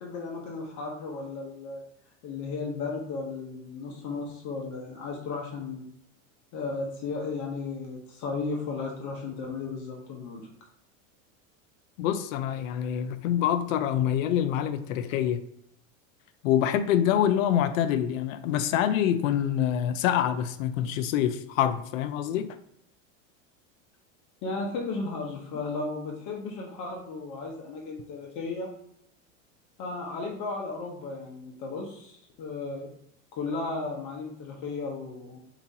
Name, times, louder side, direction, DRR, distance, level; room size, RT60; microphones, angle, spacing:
voice 1, 0.0-1.8 2.2-5.9 6.5-10.5 24.4-28.7 29.8-32.9 33.3-35.4, left 3 dB, 50° left, 0 dB, 0.9 m, -35 dB
voice 2, 12.0-15.4 16.4-22.5, left 10 dB, 75° left, 11 dB, 0.5 m, -26 dB
4.6 x 2.9 x 2.7 m, 0.70 s
supercardioid pair, 110°, 40 cm